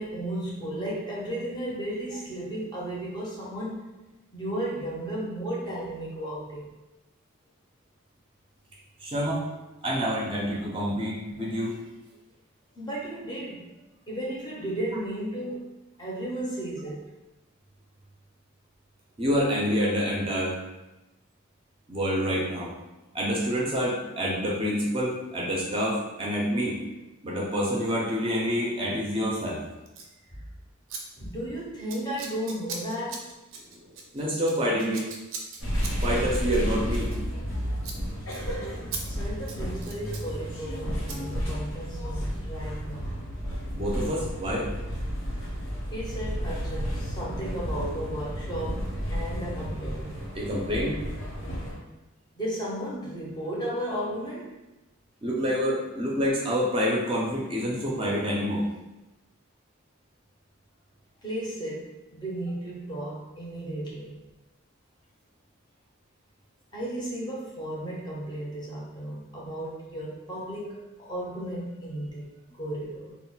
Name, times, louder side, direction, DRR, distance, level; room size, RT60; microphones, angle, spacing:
voice 1, 0.0-3.8 4.3-6.7 12.8-13.7 14.1-15.7 16.0-17.1 30.3-30.4 31.2-33.3 39.1-43.2 45.9-50.2 52.4-54.5 61.2-64.2 66.7-73.2, right 1 dB, 20° left, -5 dB, 0.5 m, -34 dB
voice 2, 9.0-9.4 9.8-11.8 19.2-20.6 21.9-22.7 23.1-26.8 27.2-29.6 33.7-33.8 34.1-35.1 36.0-37.1 43.7-44.7 50.3-51.0 55.2-58.7, equal, 25° right, -4 dB, 0.4 m, -27 dB
Scissors, 29.9-30.1 30.9-31.0 31.3-31.5 31.9-37.5 37.8-38.0 38.3-38.4 38.9-39.0 39.3-40.3 41.1-41.2, right 4 dB, 85° right, 0.5 m, -40 dB
sound 1, 35.6-51.8, equal, 90° left, 0.9 m, -32 dB
2.2 x 2.1 x 3.8 m, 1.0 s
head